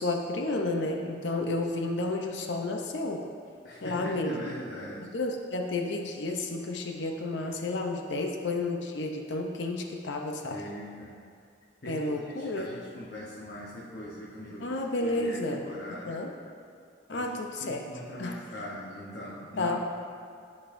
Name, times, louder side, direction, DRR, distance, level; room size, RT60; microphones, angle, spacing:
voice 1, 0.0-3.2 3.8-4.4 5.1-10.6 11.9-12.7 14.6-15.6 16.0-16.3 17.1-17.8 18.2-18.4 19.6-19.8, left 2 dB, 75° left, 2 dB, 0.6 m, -31 dB
voice 2, 3.6-5.1 10.5-11.2 11.8-16.2 17.1-19.8, equal, 55° left, -6 dB, 1.0 m, -41 dB
14.5 x 5.3 x 2.6 m, 2.4 s
head